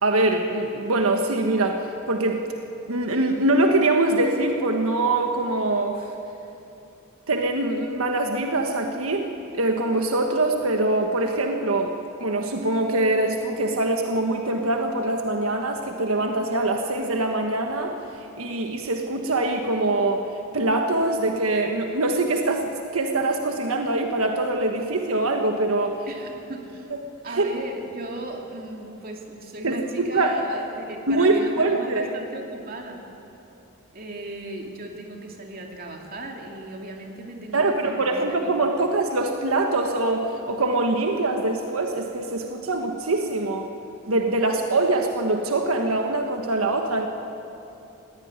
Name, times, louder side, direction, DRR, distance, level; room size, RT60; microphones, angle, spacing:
voice 1, 0.0-2.4 2.9-6.1 7.3-9.3 9.5-11.9 12.2-17.9 18.4-20.3 20.5-26.0 27.3-27.5 29.6-30.3 31.1-32.0 37.5-43.7 44.1-47.1, right 2 dB, 85° right, 3 dB, 1.4 m, -23 dB
voice 2, 26.1-26.9 27.2-33.0 33.9-38.8, right 2 dB, 45° right, 1 dB, 2.5 m, -37 dB
19.5 x 16.5 x 9.7 m, 2.8 s
head